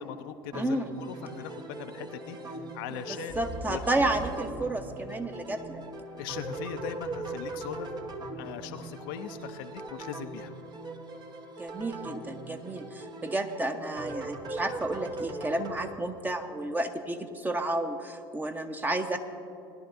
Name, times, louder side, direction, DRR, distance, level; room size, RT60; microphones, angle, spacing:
voice 1, 0.0-4.1 6.2-7.9 8.3-10.5, left 10 dB, 65° left, 8 dB, 0.6 m, -40 dB
voice 2, 0.5-0.9 3.4-5.8 11.6-19.2, right 2 dB, 15° right, 6 dB, 1.0 m, -31 dB
sound 1, 0.5-15.9, right 2 dB, 35° right, 1.2 m, -40 dB
sound 2, 3.3-7.2 7.7-7.8, right 1 dB, 55° right, 3.0 m, -42 dB
20.0 x 11.5 x 2.6 m, 2.6 s
figure-of-eight pair, 65°, 12 cm